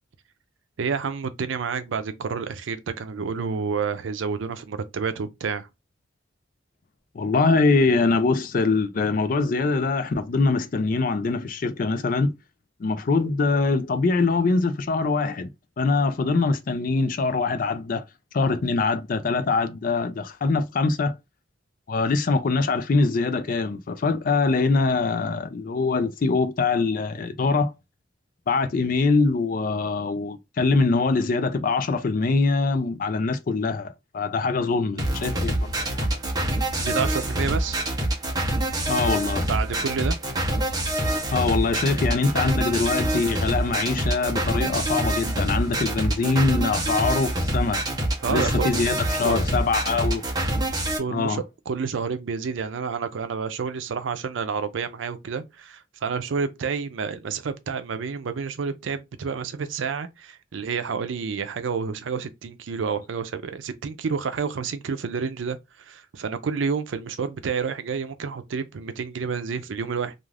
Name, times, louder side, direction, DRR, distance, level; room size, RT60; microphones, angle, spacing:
voice 1, 0.8-5.7 36.7-37.8 39.5-40.2 48.2-48.7 49.2-49.4 51.0-70.1, right 5 dB, 90° right, 0.5 m, -29 dB
voice 2, 7.1-12.3 12.8-15.5 15.8-18.0 18.3-21.1 21.9-27.7 28.5-36.2 38.9-39.5 41.3-47.8 48.3-50.2 51.1-51.4, left 3 dB, 45° left, 0.4 m, -23 dB
sound 1, 35.0-51.0, right 1 dB, 20° right, 0.7 m, -26 dB
2.4 x 2.4 x 3.2 m
head